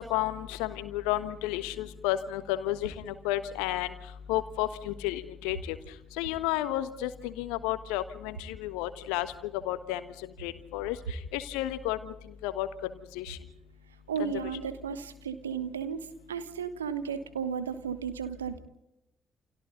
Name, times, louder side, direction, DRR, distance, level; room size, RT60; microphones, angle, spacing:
voice 1, 0.0-3.9 4.3-5.8 6.2-9.3 9.6-10.0 10.4-11.0 11.3-12.0 12.4-12.7 13.1-13.4 14.2-14.3, left 14 dB, 70° left, 12 dB, 1.3 m, -31 dB
voice 2, 14.1-18.6, right 7 dB, 80° right, 12 dB, 1.3 m, -34 dB
29.5 x 28.0 x 4.0 m, 0.89 s
figure-of-eight pair, 45°, 0 cm